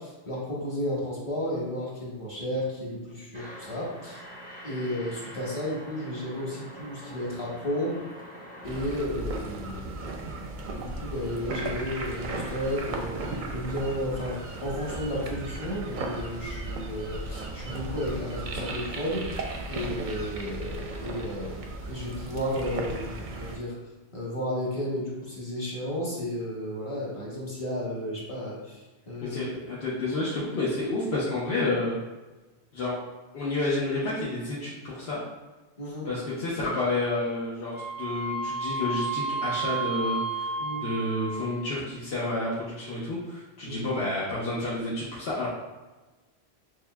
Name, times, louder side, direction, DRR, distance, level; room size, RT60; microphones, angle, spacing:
voice 1, 0.0-4.2 4.6-8.0 8.6-10.4 10.7-19.4 19.7-23.7 24.1-29.4 35.8-36.1 40.6-40.8 43.7-43.8, equal, 30° left, -6 dB, 0.9 m, -33 dB
sound 1, 3.3-9.0, equal, 10° left, 0.6 m, -45 dB
sound 2, 8.6-23.6, right 2 dB, 60° right, 0.6 m, -36 dB
voice 2, 29.2-32.0 32.7-33.0 33.3-35.2 36.0-45.5, left 2 dB, 75° left, -7 dB, 1.0 m, -30 dB
Wind instrument woodwind instrument, 37.7-41.6, right 3 dB, 60° left, 1.7 m, -32 dB
6.3 x 2.1 x 2.2 m, 1.2 s
omnidirectional pair, 1.1 m